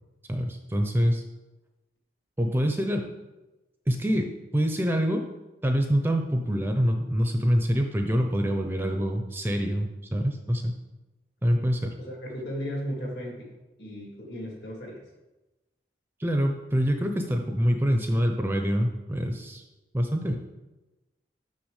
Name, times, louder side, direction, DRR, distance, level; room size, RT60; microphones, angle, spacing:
voice 1, 0.3-1.2 2.4-3.1 3.9-5.2 5.6-10.8 11.4-11.9 16.2-19.6 19.9-20.4, equal, 10° right, 4 dB, 0.6 m, -25 dB
voice 2, 12.0-13.5 13.8-15.0, equal, 65° left, -1 dB, 2.4 m, -35 dB
6.1 x 5.9 x 6.5 m, 1.1 s
head